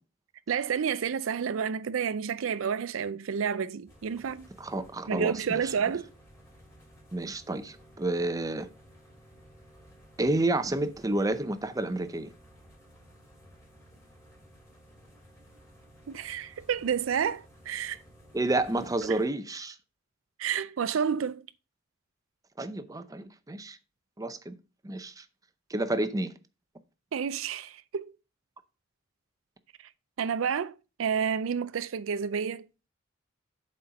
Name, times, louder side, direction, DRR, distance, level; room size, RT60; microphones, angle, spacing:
voice 1, 0.5-4.5 5.1-6.1 16.1-18.0 19.0-19.2 20.4-21.5 27.1-28.1 30.2-32.7, right 7 dB, 80° right, 0.4 m, -30 dB
sound 1, 3.9-19.2, equal, 15° left, 3.4 m, -55 dB
voice 2, 4.6-5.7 7.1-8.7 10.2-12.3 18.3-19.8 22.6-23.8 24.2-24.5 24.8-25.2 25.7-26.3, right 2 dB, 15° right, 0.6 m, -30 dB
7.5 x 4.4 x 5.2 m
head